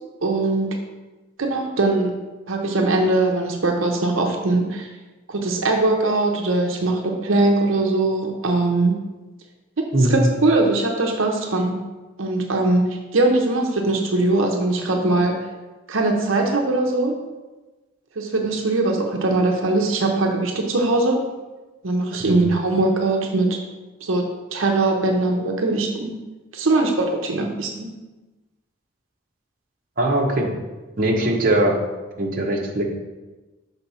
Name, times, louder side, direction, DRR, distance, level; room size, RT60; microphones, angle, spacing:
voice 1, 0.2-0.8 1.4-2.1 2.5-4.9 5.3-8.9 10.0-11.8 12.2-12.9 13.1-15.4 15.9-17.2 18.2-21.2 21.8-23.6 24.0-26.2 26.5-27.9, right 2 dB, 85° right, 2 dB, 0.8 m, -21 dB
voice 2, 9.9-10.3 22.2-22.4 30.0-30.5 31.0-31.7 32.2-32.8, right 1 dB, 45° right, -1 dB, 0.9 m, -20 dB
5.9 x 3.8 x 5.5 m, 1.2 s
head